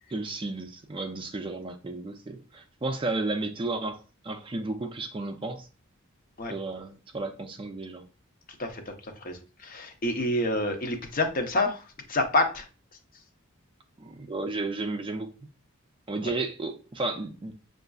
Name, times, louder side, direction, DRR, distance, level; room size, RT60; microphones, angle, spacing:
voice 1, 0.1-5.7 6.5-8.0 14.0-15.5 16.1-17.5, right 2 dB, 25° right, 0.4 m, -33 dB
voice 2, 8.6-12.7 16.2-16.3, left 2 dB, 45° left, 0.7 m, -28 dB
6.5 x 2.5 x 2.3 m
head